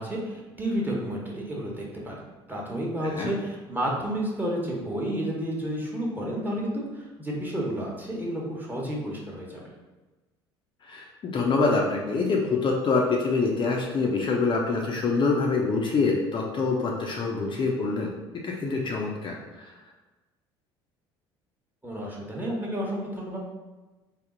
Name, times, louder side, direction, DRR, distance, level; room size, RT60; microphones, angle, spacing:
voice 1, 0.0-2.2 2.5-9.6 21.8-23.4, right 1 dB, 15° right, -3 dB, 1.1 m, -31 dB
voice 2, 10.9-18.1 18.4-19.4, left 4 dB, 35° left, -1 dB, 0.6 m, -25 dB
3.6 x 2.1 x 3.8 m, 1.2 s
hypercardioid pair, 60°, 14 cm